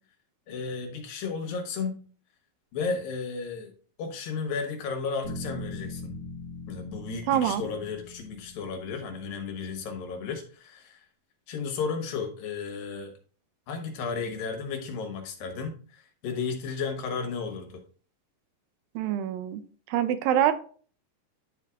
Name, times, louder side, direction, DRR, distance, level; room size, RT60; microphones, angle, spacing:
voice 1, 0.5-1.9 2.7-3.7 4.0-6.2 6.7-11.1 11.5-13.1 13.7-17.8, left 5 dB, 80° left, 3 dB, 3.2 m, -33 dB
sound 1, 5.2-9.3, left 3 dB, 40° right, 2.7 m, -41 dB
voice 2, 7.3-7.6 19.0-19.6 19.9-20.5, right 11 dB, 80° right, 11 dB, 2.4 m, -25 dB
10.5 x 4.5 x 3.5 m, 0.41 s
omnidirectional pair, 4.1 m